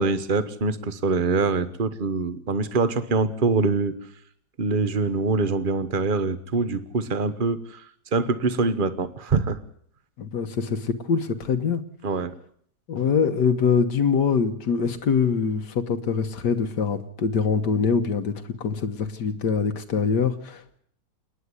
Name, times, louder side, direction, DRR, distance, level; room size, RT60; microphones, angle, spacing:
voice 1, 0.0-3.9 4.6-7.8 8.1-9.6 12.0-12.3, right 4 dB, 35° right, 12 dB, 1.2 m, -24 dB
voice 2, 10.2-11.9 12.9-20.8, left 6 dB, 80° left, 6 dB, 1.9 m, -24 dB
28.0 x 9.9 x 9.7 m, 0.65 s
omnidirectional pair, 1.8 m